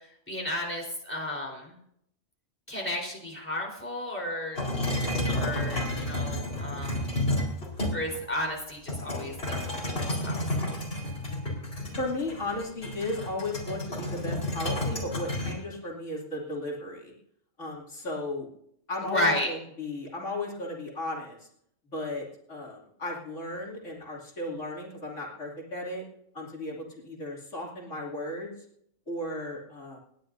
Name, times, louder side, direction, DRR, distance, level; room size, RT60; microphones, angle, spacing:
voice 1, 0.3-1.8 2.7-4.6 5.2-6.9 7.9-9.7 10.0-10.4 19.1-19.5, left 1 dB, 10° left, -1 dB, 4.0 m, -32 dB
sound 1, 4.6-8.2 8.9-15.5, left 1 dB, 55° left, 4.7 m, -31 dB
voice 2, 12.0-17.1 17.6-18.5 18.9-21.5 21.9-26.0 26.3-28.5 29.1-30.0, left 2 dB, 75° left, -3 dB, 3.1 m, -35 dB
28.5 x 10.5 x 2.7 m, 0.71 s
omnidirectional pair, 1.3 m